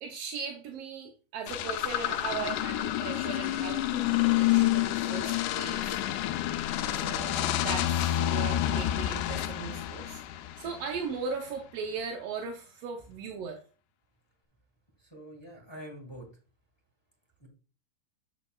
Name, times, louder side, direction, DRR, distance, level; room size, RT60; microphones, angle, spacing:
voice 1, 0.0-6.0 6.9-10.2 10.6-13.6, right 5 dB, 70° right, 2 dB, 1.6 m, -38 dB
sound 1, 1.5-11.0, left 13 dB, 85° left, 2.1 m, -29 dB
voice 2, 15.0-16.3 17.4-17.5, right 1 dB, 35° left, 1 dB, 0.4 m, -45 dB
8.1 x 7.9 x 2.3 m, 0.36 s
omnidirectional pair, 3.6 m